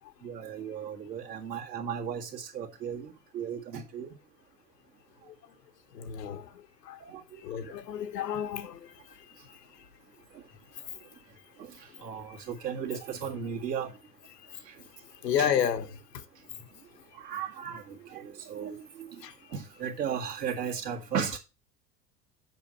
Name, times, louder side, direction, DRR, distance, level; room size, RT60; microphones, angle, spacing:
voice 1, 0.2-4.1 7.1-7.2 12.0-13.9 15.4-15.5 17.2-17.8 18.1-19.1 19.5-21.4, right 7 dB, 75° right, 1.9 m, -35 dB
voice 2, 5.9-7.0 7.4-9.6 14.3-14.4 15.2-16.2 19.2-19.3, left 9 dB, 80° left, 1.0 m, -32 dB
7.4 x 5.4 x 4.1 m
figure-of-eight pair, 75°, 48 cm